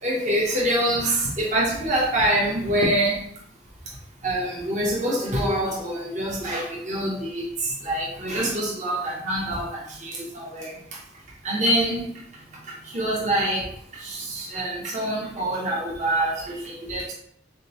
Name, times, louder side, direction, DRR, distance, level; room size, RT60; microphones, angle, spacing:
voice 1, 0.0-3.2 4.2-10.7 11.4-12.1 12.9-13.7 14.0-17.1, right 1 dB, 40° right, -4 dB, 0.9 m, -25 dB
3.7 x 3.6 x 3.0 m, 0.63 s
head